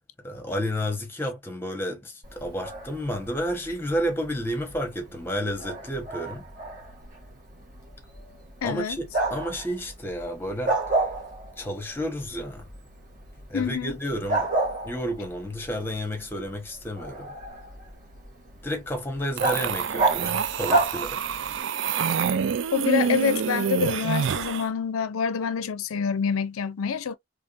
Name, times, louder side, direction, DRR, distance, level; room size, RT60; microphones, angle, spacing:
voice 1, 0.2-6.5 8.6-11.1 11.6-12.7 13.5-14.5 14.8-17.3 18.6-21.4, equal, 10° left, 1.0 m, -31 dB
Bark, 2.2-21.6, right 2 dB, 40° right, 1.4 m, -32 dB
voice 2, 8.6-9.0 13.5-14.0 22.7-27.2, left 7 dB, 90° left, 0.5 m, -27 dB
sound 1, 19.4-24.7, right 7 dB, 60° right, 0.3 m, -27 dB
3.5 x 3.3 x 2.5 m
head